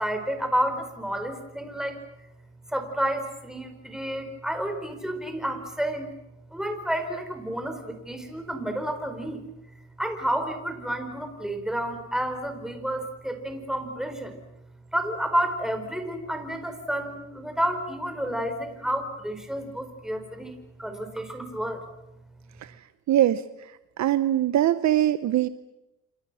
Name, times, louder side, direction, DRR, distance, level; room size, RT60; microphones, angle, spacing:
voice 1, 0.0-2.0 2.7-6.1 6.5-9.4 10.0-14.4 14.9-21.8, right 1 dB, ahead, 6 dB, 4.8 m, -30 dB
voice 2, 23.1-23.4 24.0-25.5, right 12 dB, 65° right, 13 dB, 0.9 m, -21 dB
27.5 x 27.0 x 6.3 m, 0.93 s
cardioid pair, 90°, 30 cm